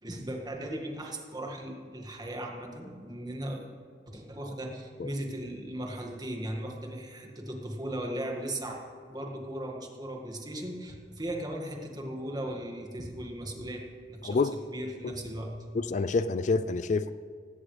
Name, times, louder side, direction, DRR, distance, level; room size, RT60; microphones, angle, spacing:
voice 1, 0.0-3.7 4.1-8.8 9.1-13.8 14.1-14.4 14.7-15.5, right 1 dB, 25° right, 1 dB, 1.9 m, -37 dB
voice 2, 14.2-14.6 15.0-15.1 15.7-17.1, left 4 dB, 45° left, 13 dB, 0.4 m, -27 dB
18.0 x 16.5 x 3.3 m, 2.1 s
head